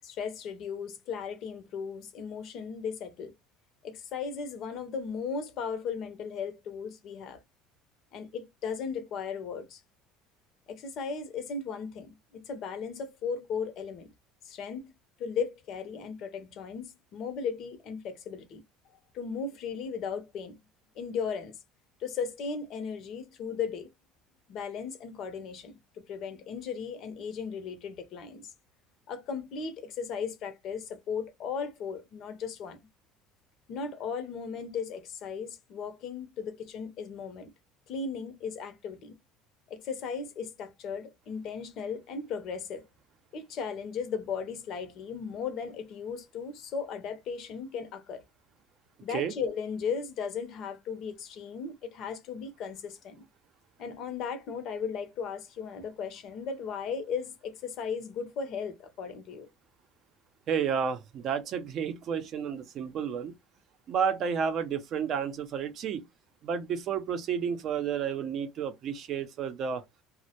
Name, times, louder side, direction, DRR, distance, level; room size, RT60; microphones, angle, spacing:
voice 1, 0.0-3.3 3.8-7.4 8.1-9.8 10.7-14.1 14.4-14.9 15.2-18.6 19.1-20.6 21.0-21.6 22.0-23.9 24.5-28.5 29.1-32.8 33.7-37.5 37.9-39.1 39.7-42.9 43.3-48.2 49.0-53.3 53.8-59.5, left 6 dB, 50° left, 0.6 m, -36 dB
voice 2, 60.5-63.3 63.9-66.0 66.4-69.8, right 7 dB, 45° right, 0.5 m, -31 dB
2.1 x 2.1 x 2.8 m
cardioid pair, 140°, 0 cm